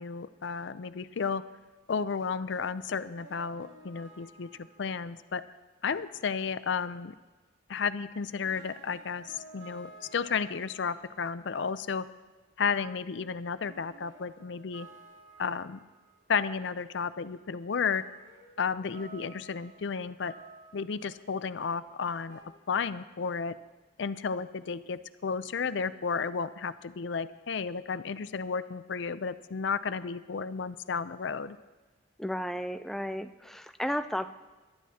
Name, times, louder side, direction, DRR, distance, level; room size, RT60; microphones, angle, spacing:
voice 1, 0.0-1.4 1.9-5.4 5.8-7.2 7.7-12.1 12.6-14.9 15.4-15.8 16.3-18.0 18.6-20.3 20.7-22.4 22.7-23.6 24.0-31.6, left 5 dB, 65° left, 14 dB, 0.5 m, -33 dB
sound 1, 3.1-5.4 8.2-8.3 8.5-11.6 12.9-13.0 13.7-16.5 17.0-17.1 17.9-21.4 22.3-22.4, right 2 dB, 75° right, 2.9 m, -53 dB
voice 2, 32.2-34.3, equal, ahead, 8 dB, 0.4 m, -33 dB
23.0 x 12.5 x 2.8 m, 1.2 s
head